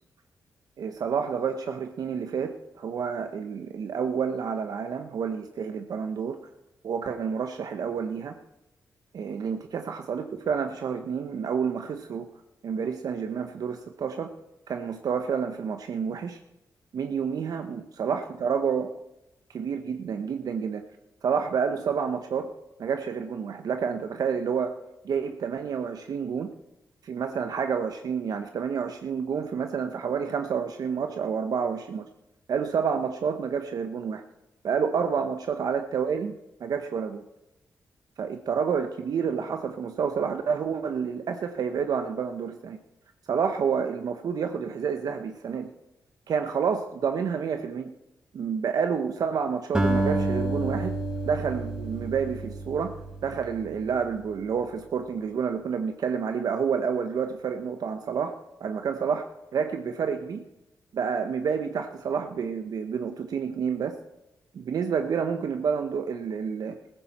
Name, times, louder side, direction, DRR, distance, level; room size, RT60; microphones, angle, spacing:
voice 1, 0.8-6.4 6.8-8.3 9.1-12.3 12.6-14.3 14.7-16.4 16.9-18.9 19.5-20.8 21.2-22.5 22.8-24.7 25.0-26.5 27.0-32.0 32.5-34.2 34.6-36.3 36.6-37.2 38.2-42.8 43.3-45.7 46.3-47.9 48.3-51.0 51.2-53.0 53.2-59.3 59.5-60.4 60.9-64.0 64.5-66.7, right 6 dB, 70° right, 6 dB, 0.9 m, -29 dB
Acoustic guitar, 49.7-54.2, right 2 dB, 10° right, 3.6 m, -29 dB
15.0 x 14.5 x 4.2 m, 0.93 s
cardioid pair, 80°, 7 cm